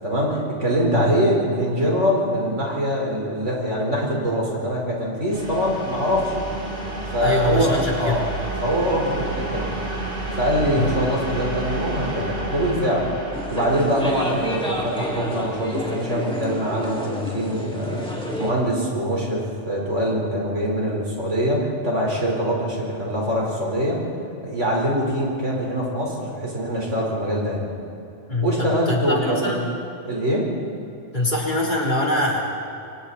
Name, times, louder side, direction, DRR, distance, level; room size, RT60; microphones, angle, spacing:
voice 1, 0.0-6.5 7.1-8.2 8.6-9.7 10.4-13.1 13.5-24.0 24.4-27.7 28.4-29.6 30.0-30.5, equal, 80° right, -2 dB, 5.1 m, -23 dB
sound 1, 5.3-16.9, right 2 dB, 65° right, 4.5 m, -31 dB
voice 2, 7.2-8.3 10.7-10.9 28.3-29.6 31.1-32.4, left 1 dB, 40° left, -4 dB, 4.1 m, -23 dB
sound 2, 13.3-18.5, left 1 dB, 5° left, 3.2 m, -30 dB
28.0 x 24.0 x 4.3 m, 2.7 s
omnidirectional pair, 1.2 m